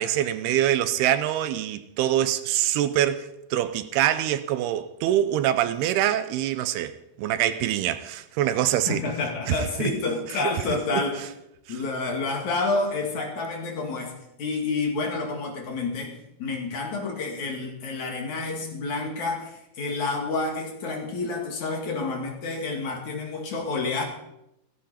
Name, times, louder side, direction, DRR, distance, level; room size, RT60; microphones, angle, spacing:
voice 1, 0.0-9.0 9.5-9.6 10.4-10.5 10.9-11.0, right 12 dB, 85° right, 2.8 m, -24 dB
voice 2, 8.9-11.2 11.7-14.1 14.4-24.0, left 3 dB, 50° left, 3.5 m, -29 dB
16.5 x 15.5 x 4.4 m
omnidirectional pair, 4.5 m